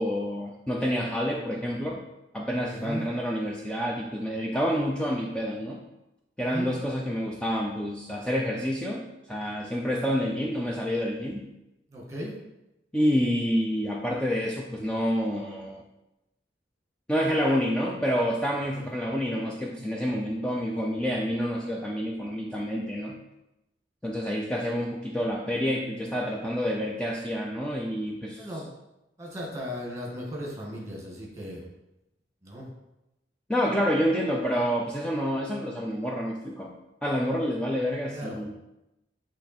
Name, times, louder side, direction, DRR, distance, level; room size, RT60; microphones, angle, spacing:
voice 1, 0.0-2.0 2.3-5.8 6.4-11.4 12.9-15.8 17.1-23.2 24.0-28.5 33.5-36.7 37.0-38.5, equal, 5° left, -2 dB, 0.5 m, -28 dB
voice 2, 6.4-6.7 11.9-12.4 18.7-18.9 28.4-28.7 29.2-31.6 32.4-32.7 38.1-38.4, equal, 15° right, -3 dB, 1.7 m, -36 dB
7.9 x 3.2 x 4.3 m, 0.93 s
head